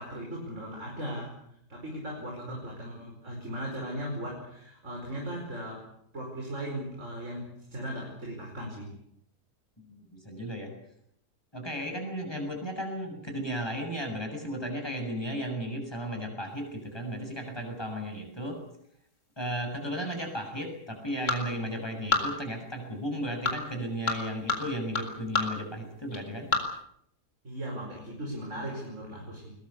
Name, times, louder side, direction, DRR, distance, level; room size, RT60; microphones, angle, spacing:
voice 1, 0.0-5.9 6.1-9.0 27.4-29.5, equal, 45° right, -1 dB, 5.4 m, -38 dB
voice 2, 9.8-10.7 11.5-18.6 19.4-26.5, equal, 15° left, 3 dB, 7.2 m, -35 dB
sound 1, 16.5-26.8, left 3 dB, 45° left, 4.5 m, -36 dB
22.5 x 20.5 x 8.3 m, 0.73 s
omnidirectional pair, 1.7 m